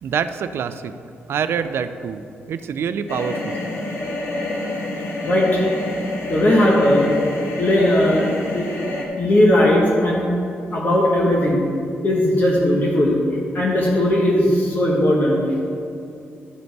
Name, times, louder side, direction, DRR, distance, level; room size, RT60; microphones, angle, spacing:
voice 1, 0.0-0.9 1.3-3.6, right 7 dB, 70° right, 11 dB, 0.4 m, -26 dB
sound 1, 3.1-9.0, left 2 dB, 65° left, 1.4 m, -27 dB
voice 2, 5.2-5.6 6.3-8.7 9.2-10.2 10.7-11.6 12.0-13.1 13.5-15.4, left 1 dB, 45° left, -3 dB, 1.3 m, -18 dB
12.0 x 5.2 x 4.7 m, 2.6 s
wide cardioid pair, 135°, 4 cm